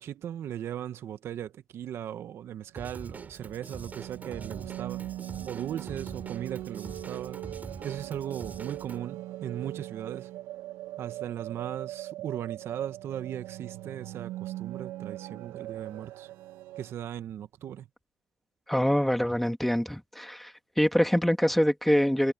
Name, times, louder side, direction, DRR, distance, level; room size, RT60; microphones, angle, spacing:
voice 1, 0.0-5.0 5.5-7.4 7.8-10.3 11.0-16.3 16.8-17.9, right 10 dB, 75° right, 1.6 m, -38 dB
sound 1, 2.6-16.9, right 15 dB, 90° right, 3.0 m, -41 dB
Drum kit / Drum, 2.8-9.0, right 4 dB, 40° right, 4.1 m, -44 dB
voice 2, 18.7-20.5 20.8-22.3, equal, 5° left, 3.0 m, -24 dB
supercardioid pair, 50°, 4 cm